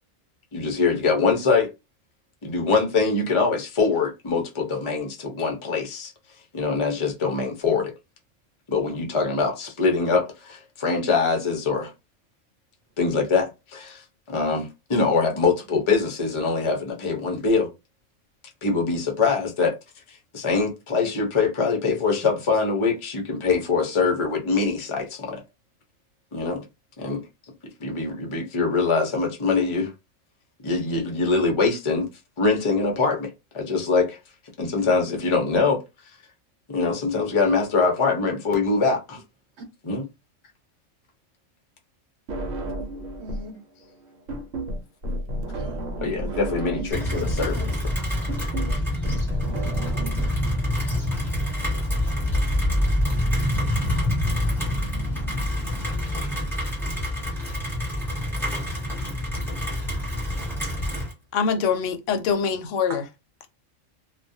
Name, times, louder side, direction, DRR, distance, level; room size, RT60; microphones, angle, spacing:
voice 1, 0.5-1.7 2.4-6.1 6.5-7.9 8.7-11.9 13.0-14.0 14.3-17.7 18.6-19.8 20.1-25.4 26.3-26.6 27.0-27.2 27.8-29.9 30.6-32.1 32.4-33.3 33.5-34.2 34.6-35.8 36.7-39.2 39.8-40.0 46.0-47.6, left 4 dB, 35° left, 0.5 m, -23 dB
sound 1, 42.3-43.5 43.8-50.3, right 1 dB, 80° right, 1.0 m, -32 dB
voice 2, 43.2-43.5 45.3-45.9 46.2-46.6 47.0-48.7 50.1-50.4 52.2-52.7 62.9-63.0, right 3 dB, 65° right, 1.1 m, -42 dB
Rain, 46.9-61.1, left 1 dB, ahead, 1.0 m, -26 dB
voice 3, 61.3-63.0, left 6 dB, 75° left, 0.9 m, -24 dB
2.3 x 2.2 x 2.6 m
omnidirectional pair, 1.3 m